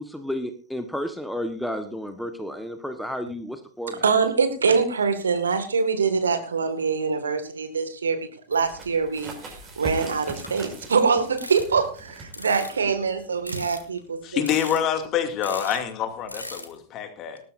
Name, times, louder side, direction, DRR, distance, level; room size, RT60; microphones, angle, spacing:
voice 1, 0.0-4.0, equal, ahead, 8 dB, 1.3 m, -32 dB
voice 2, 4.0-8.2 8.5-14.4 15.7-15.8, right 5 dB, 70° right, 9 dB, 2.0 m, -24 dB
sound 1, 8.5-9.1 9.4-9.7 10.1-10.8 11.4-11.8 12.3-13.0 13.4-14.0 14.5-15.1 15.4-15.7 16.3-16.8, left 2 dB, 85° left, 2.0 m, -39 dB
sound 2, 8.6-13.9, right 3 dB, 25° right, 5.6 m, -40 dB
voice 3, 14.2-17.4, left 9 dB, 35° left, 6 dB, 2.5 m, -26 dB
19.0 x 13.0 x 2.7 m, 0.38 s
figure-of-eight pair, 90°, 0 cm